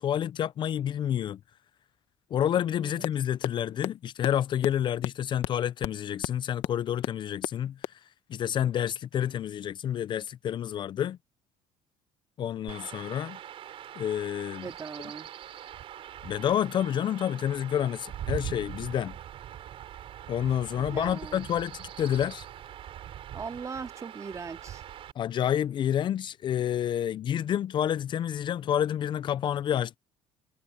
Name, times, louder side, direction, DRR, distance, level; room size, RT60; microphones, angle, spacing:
voice 1, 0.0-1.4 2.3-8.0 8.3-11.2 12.4-13.4 14.0-14.7 16.2-19.2 20.3-22.5 25.2-30.0, left 10 dB, 45° left, 0.5 m, -29 dB
sound 1, 3.0-3.1 3.4-3.5 3.8-3.9 4.2-4.3 4.6-4.7 5.0-5.1 5.4-5.5 5.8-5.9 6.2-6.3 6.6-6.7 7.0-7.1 7.4-7.5 7.8-7.9, left 16 dB, 75° left, 1.0 m, -29 dB
Chirp tweet / Wind / Stream, 12.7-25.1, right 11 dB, 55° right, 6.6 m, -42 dB
voice 2, 14.6-15.3 20.8-21.5 23.3-24.8, right 5 dB, 30° right, 2.6 m, -40 dB
cardioid pair, 100°, 11 cm